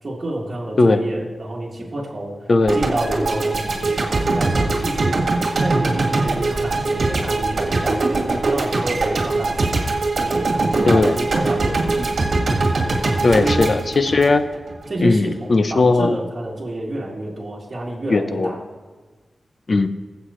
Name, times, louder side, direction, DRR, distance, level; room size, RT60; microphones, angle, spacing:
voice 1, 0.0-2.3 2.7-5.2 5.6-9.7 10.2-12.1 12.8-13.7 14.9-18.6, right 1 dB, 35° right, -5 dB, 3.3 m, -28 dB
voice 2, 2.5-2.8 10.9-11.1 13.2-14.4 15.0-16.2 18.1-18.5 19.7-19.9, left 3 dB, 45° left, 10 dB, 0.7 m, -17 dB
sound 1, 2.7-14.9, right 3 dB, 60° right, 2.0 m, -21 dB
23.5 x 8.1 x 3.2 m, 1.3 s
wide cardioid pair, 125°, 0 cm